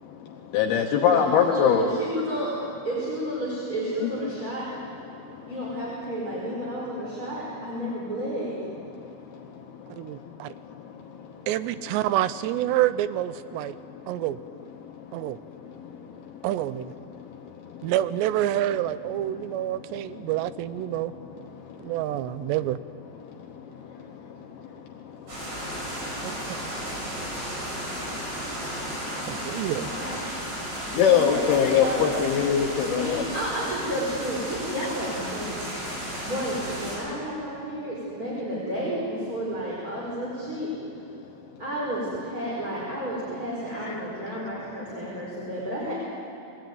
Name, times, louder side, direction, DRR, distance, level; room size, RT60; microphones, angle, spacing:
voice 1, 0.5-1.9 4.0-4.3 30.9-33.2 34.8-34.9 43.9-44.0, left 8 dB, 70° left, 2 dB, 2.7 m, -22 dB
voice 2, 1.1-2.5 2.8-4.6 5.5-8.5 29.7-30.3 31.1-32.1 32.9-35.6 36.2-40.7 41.6-45.9, right 1 dB, 20° right, -6 dB, 4.6 m, -31 dB
voice 3, 10.0-10.5 11.5-13.8 14.1-14.4 15.1-15.4 16.4-16.9 17.8-21.1 21.8-22.8 26.2-26.6 29.3-29.9, right 13 dB, 80° right, 14 dB, 2.7 m, -27 dB
sound 1, 25.3-37.0, right 1 dB, 55° right, 9.0 m, -34 dB
22.0 x 17.0 x 9.3 m, 2.6 s
omnidirectional pair, 5.1 m